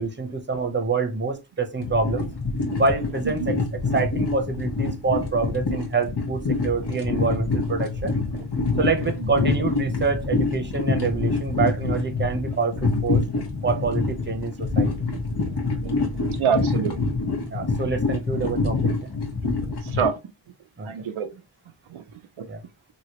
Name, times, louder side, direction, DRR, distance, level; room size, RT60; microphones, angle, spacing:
voice 1, 0.0-2.3 2.8-8.2 8.8-13.2 13.6-15.1 17.5-19.1 20.8-20.9 22.5-22.6, right 4 dB, 25° right, 0.8 m, -26 dB
sound 1, 1.8-20.1, left 3 dB, 55° left, 1.0 m, -26 dB
voice 2, 16.4-16.9 19.8-20.2 20.9-21.3 21.9-22.0 22.4-22.5, right 7 dB, 80° right, 0.6 m, -26 dB
3.0 x 2.7 x 2.9 m
wide cardioid pair, 45°, 48 cm